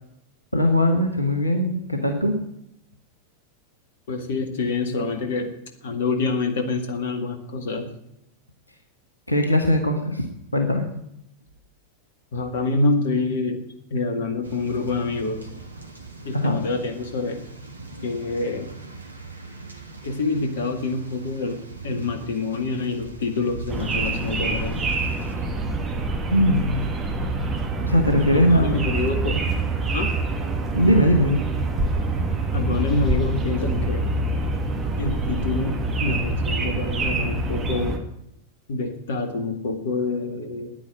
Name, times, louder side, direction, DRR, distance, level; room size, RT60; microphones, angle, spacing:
voice 1, 0.5-2.4 9.3-10.2 10.5-10.9 16.3-16.6 25.4-25.5 26.3-26.9 27.8-28.8 30.7-31.4, left 1 dB, 85° left, 4 dB, 1.6 m, -20 dB
voice 2, 4.1-5.5 5.8-7.9 12.3-13.6 13.9-15.5 16.2-17.4 18.0-18.7 20.0-24.9 28.3-29.5 29.9-30.1 32.5-34.1 35.0-38.1 38.7-40.7, left 3 dB, 60° left, 6 dB, 1.9 m, -26 dB
sound 1, 14.4-25.4, right 4 dB, 80° right, 1.7 m, -41 dB
sound 2, 23.7-38.0, right 2 dB, 20° right, 2.1 m, -26 dB
9.8 x 9.7 x 8.5 m, 0.78 s
figure-of-eight pair, 90°, 0 cm